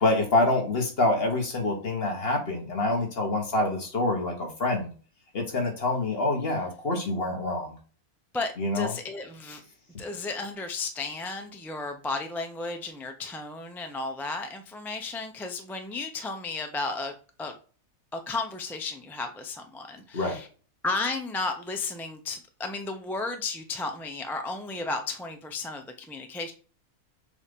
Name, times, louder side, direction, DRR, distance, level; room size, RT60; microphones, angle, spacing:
voice 1, 0.0-4.9 5.3-7.8 8.6-8.9 20.1-20.4, left 2 dB, 40° left, 2 dB, 1.6 m, -26 dB
voice 2, 8.3-9.6 10.0-17.1 17.4-17.5 18.1-20.5 20.8-26.5, left 3 dB, 5° left, 4 dB, 0.4 m, -33 dB
7.0 x 2.8 x 5.3 m, 0.38 s
omnidirectional pair, 1.6 m